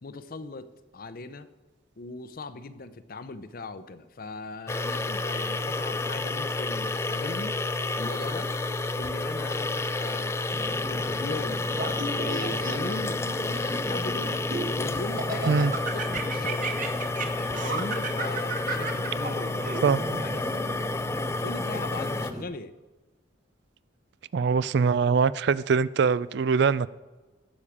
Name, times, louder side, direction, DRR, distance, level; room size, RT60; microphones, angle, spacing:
voice 1, 0.0-1.5 2.0-7.6 8.0-8.5 8.9-10.5 10.9-11.6 12.1-14.5 14.8-16.7 17.4-19.8 20.2-20.6 21.4-22.7, left 3 dB, 50° left, 0.6 m, -39 dB
sound 1, 4.7-22.3, left 2 dB, 15° left, 0.3 m, -30 dB
sound 2, 10.5-22.4, right 1 dB, 20° right, 1.1 m, -40 dB
Laughter, 11.7-13.1 13.7-14.7 15.2-20.2, right 3 dB, 45° right, 1.4 m, -33 dB
voice 2, 24.3-26.9, right 5 dB, 60° right, 0.4 m, -22 dB
19.0 x 7.2 x 4.9 m
head